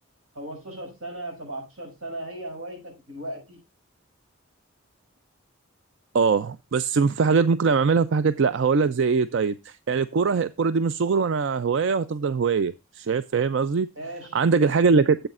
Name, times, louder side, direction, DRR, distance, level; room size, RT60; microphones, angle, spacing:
voice 1, 0.3-3.6 14.0-14.4, right 1 dB, 90° right, 6.0 m, -37 dB
voice 2, 6.1-13.9 14.3-15.3, right 5 dB, 60° right, 0.4 m, -22 dB
13.5 x 7.9 x 2.4 m
head